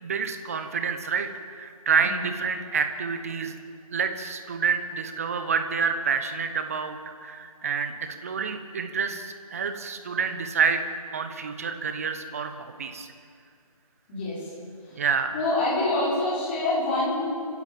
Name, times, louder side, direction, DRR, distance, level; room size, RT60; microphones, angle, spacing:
voice 1, 0.0-3.5 3.9-13.1 14.9-15.4, right 6 dB, 25° right, 8 dB, 1.1 m, -28 dB
voice 2, 14.1-14.5 15.3-17.2, left 2 dB, 15° left, -7 dB, 6.2 m, -26 dB
26.0 x 15.5 x 7.4 m, 2.3 s
figure-of-eight pair, 160°, 19 cm